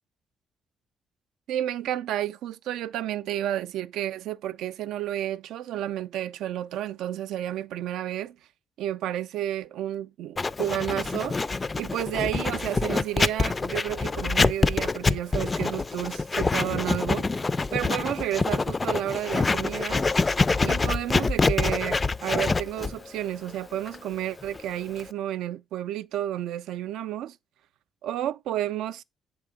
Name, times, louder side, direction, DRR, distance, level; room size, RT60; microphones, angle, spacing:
voice 1, 1.5-8.4 8.8-11.4 11.8-17.3 17.7-20.0 20.6-27.4 28.0-29.0, right 12 dB, 85° right, 0.4 m, -31 dB
Writing, 10.4-25.1, left 3 dB, 25° left, 0.3 m, -26 dB
7.7 x 3.5 x 5.0 m
cardioid pair, 90°, 0 cm